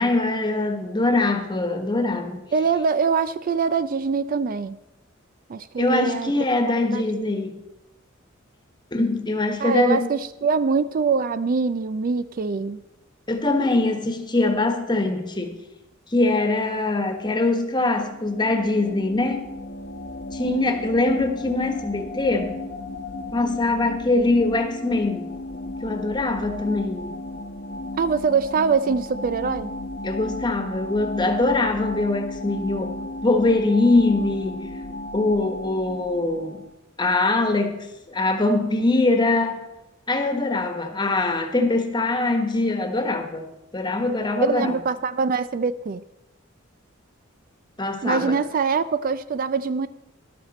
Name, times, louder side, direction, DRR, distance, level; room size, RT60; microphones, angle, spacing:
voice 1, 0.0-2.4 5.8-7.6 8.9-10.1 13.3-15.6 16.1-19.5 20.3-22.5 23.3-25.2 25.8-27.2 30.0-32.9 33.2-34.7 35.1-36.6 37.0-39.6 40.1-43.5 43.7-44.8 47.8-48.4, left 2 dB, 20° left, 6 dB, 1.3 m, -22 dB
voice 2, 2.5-4.8 5.5-6.3 6.9-7.3 9.6-12.8 28.0-29.7 44.4-46.0 48.0-49.9, right 5 dB, 45° right, 14 dB, 0.4 m, -23 dB
sound 1, 17.9-36.7, left 1 dB, 55° left, 1.0 m, -35 dB
13.0 x 11.5 x 4.2 m, 0.95 s
head